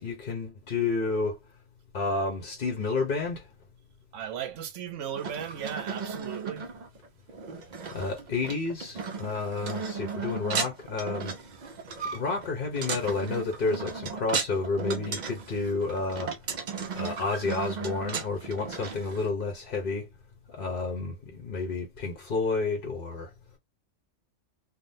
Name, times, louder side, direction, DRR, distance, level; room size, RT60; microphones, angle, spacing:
voice 1, 0.0-1.4 1.9-3.5 7.9-11.3 12.1-16.3 16.9-20.1 20.5-23.3, left 3 dB, 50° left, 0.9 m, -30 dB
voice 2, 4.1-6.7, right 9 dB, 75° right, 1.0 m, -36 dB
sound 1, 5.2-19.3, right 5 dB, 50° right, 0.5 m, -35 dB
3.5 x 2.2 x 2.6 m
omnidirectional pair, 1.3 m